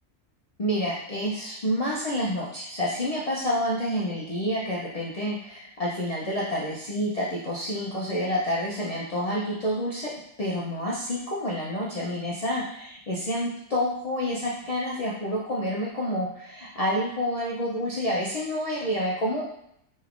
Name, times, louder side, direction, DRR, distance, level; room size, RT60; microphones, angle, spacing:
voice 1, 0.6-10.1 10.4-19.4, equal, 65° left, -5 dB, 0.3 m, -28 dB
3.3 x 3.2 x 2.4 m, 0.76 s
omnidirectional pair, 1.4 m